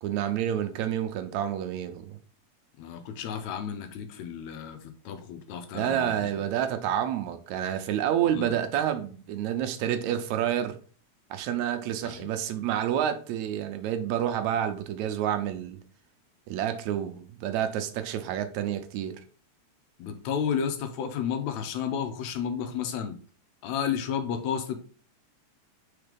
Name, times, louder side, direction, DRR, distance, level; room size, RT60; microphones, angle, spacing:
voice 1, 0.0-2.2 5.7-10.8 11.3-15.8 16.5-19.2, right 10 dB, 80° right, 2.0 m, -29 dB
voice 2, 2.8-6.3 8.3-8.5 12.0-12.3 20.0-23.2 23.6-24.8, left 7 dB, 80° left, 2.1 m, -32 dB
4.9 x 4.3 x 5.1 m
omnidirectional pair, 3.3 m